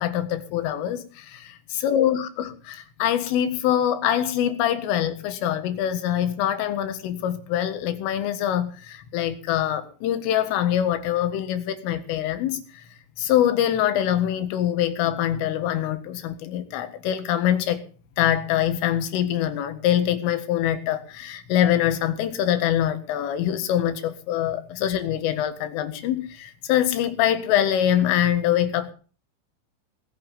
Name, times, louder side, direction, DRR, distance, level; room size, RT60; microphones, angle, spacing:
voice 1, 0.0-1.6 1.8-12.6 13.2-17.8 18.2-28.9, left 11 dB, 85° left, 4.2 m, -24 dB
19.5 x 8.8 x 7.2 m
omnidirectional pair, 5.6 m